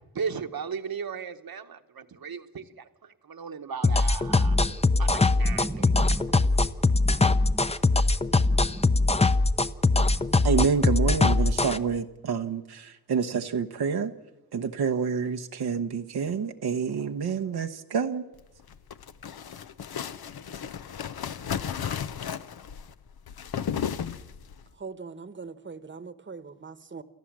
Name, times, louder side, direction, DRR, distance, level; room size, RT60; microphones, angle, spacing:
voice 1, 0.1-4.6 5.0-5.9, right 6 dB, 70° right, 1.3 m, -36 dB
sound 1, 3.8-11.8, left 3 dB, 15° left, 0.7 m, -21 dB
sound 2, 4.3-9.7 9.9-10.4, right 1 dB, 5° right, 1.1 m, -39 dB
voice 2, 10.4-14.1 14.5-18.2, right 6 dB, 85° right, 1.0 m, -28 dB
sound 3, 18.6-24.6, left 8 dB, 75° left, 0.8 m, -34 dB
voice 3, 24.8-27.0, right 4 dB, 30° right, 1.1 m, -41 dB
28.5 x 14.0 x 7.4 m
cardioid pair, 60°, 37 cm